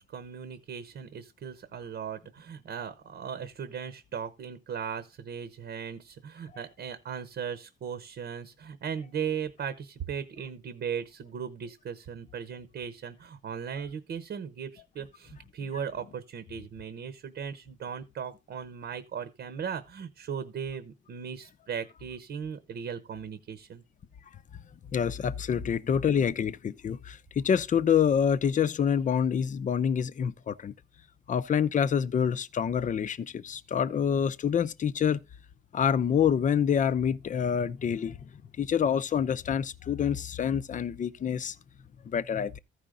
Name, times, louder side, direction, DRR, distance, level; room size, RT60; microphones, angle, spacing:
voice 1, 0.0-23.8, right 7 dB, 60° right, 1.0 m, -37 dB
voice 2, 24.9-30.7 31.3-35.2 35.7-38.3 38.6-41.6 42.0-42.6, left 8 dB, 40° left, 0.6 m, -27 dB
14.0 x 5.1 x 3.8 m
cardioid pair, 90°, 20 cm